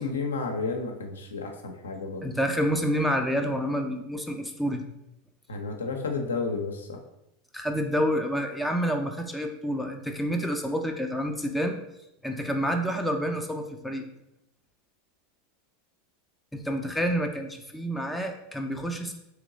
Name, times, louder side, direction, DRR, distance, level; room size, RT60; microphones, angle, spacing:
voice 1, 0.0-2.3 5.5-7.0, left 4 dB, 85° left, 3 dB, 0.6 m, -32 dB
voice 2, 2.2-4.8 7.5-11.7 12.2-14.0 16.5-19.2, equal, ahead, 3 dB, 0.5 m, -28 dB
3.0 x 3.0 x 3.8 m, 0.84 s
hypercardioid pair, 90°, 0 cm